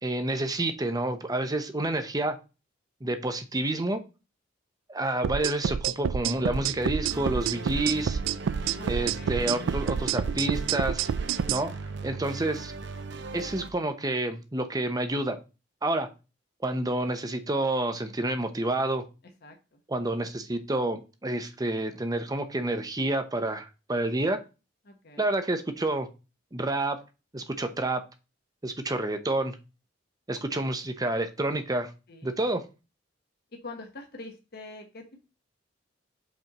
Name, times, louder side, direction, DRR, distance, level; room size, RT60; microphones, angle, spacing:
voice 1, 0.0-2.4 3.0-4.0 4.9-8.2 8.9-11.1 11.5-11.7 12.0-12.7 13.3-15.4 15.8-16.1 16.6-19.0 19.9-24.4 25.2-26.1 26.5-27.0 27.3-28.0 28.6-29.6 30.3-31.9 32.2-32.6, right 2 dB, 20° right, 8 dB, 0.8 m, -29 dB
sound 1, 5.2-11.6, right 7 dB, 85° right, 0.4 m, -28 dB
sound 2, 6.3-13.7, right 3 dB, 65° right, 0.8 m, -39 dB
voice 2, 8.7-9.5 19.4-19.8 24.8-25.3 30.5-30.6 32.1-32.4 33.6-35.2, left 2 dB, 55° left, 3 dB, 1.2 m, -45 dB
5.3 x 4.4 x 6.0 m, 0.30 s
head